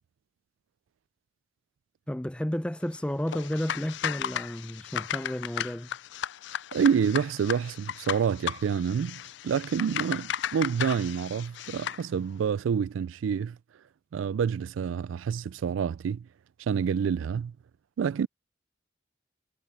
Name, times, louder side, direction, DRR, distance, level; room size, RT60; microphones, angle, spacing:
voice 1, 2.1-5.9, equal, 5° left, 0.5 m, -32 dB
sound 1, 3.3-12.0, left 9 dB, 65° left, 0.3 m, -35 dB
voice 2, 6.7-13.6 14.1-16.3 16.7-17.5 18.0-18.3, right 7 dB, 90° right, 0.3 m, -28 dB
head